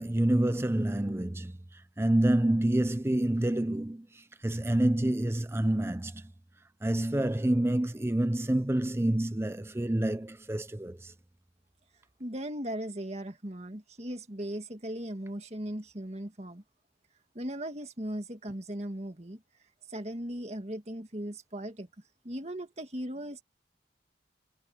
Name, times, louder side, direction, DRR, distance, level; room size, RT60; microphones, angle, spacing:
voice 1, 0.0-6.2 6.8-11.1, right 1 dB, 15° right, 0.5 m, -28 dB
voice 2, 12.2-16.6 17.3-19.4 19.9-21.9 22.2-23.4, right 1 dB, 35° right, 2.1 m, -38 dB
head